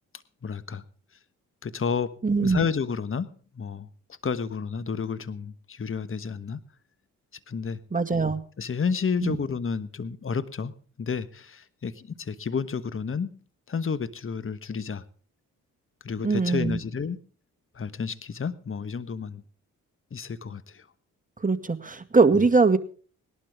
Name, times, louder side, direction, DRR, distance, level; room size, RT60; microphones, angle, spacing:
voice 1, 0.4-0.8 1.6-3.3 3.5-3.9 4.2-6.6 7.5-7.8 8.6-13.3 13.7-15.0 16.0-17.2 17.7-19.4 20.1-20.9 22.3-22.4, left 6 dB, 40° left, 15 dB, 1.3 m, -31 dB
voice 2, 2.2-2.6 7.9-8.4 9.2-9.4 16.2-16.8 21.4-22.8, right 4 dB, 25° right, 7 dB, 2.1 m, -21 dB
20.0 x 12.0 x 3.6 m, 0.40 s
supercardioid pair, 50°, 34 cm